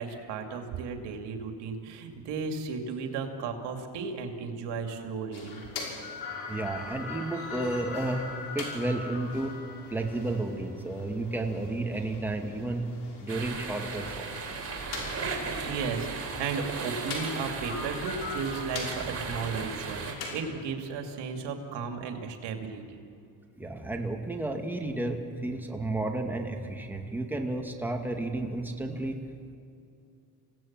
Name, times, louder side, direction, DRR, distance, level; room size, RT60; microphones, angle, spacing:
voice 1, 0.0-5.6 15.2-23.0, right 5 dB, 80° right, 4 dB, 2.6 m, -35 dB
sound 1, 5.3-20.4, left 4 dB, 65° left, 6.1 m, -41 dB
voice 2, 6.5-8.3 8.5-9.5 9.9-12.9 13.2-14.3 23.6-29.2, right 2 dB, 5° right, 2 dB, 2.5 m, -32 dB
sound 2, 13.3-20.1, right 4 dB, 35° right, 4.4 m, -36 dB
28.0 x 17.5 x 7.5 m, 2.6 s
cardioid pair, 105°, 41 cm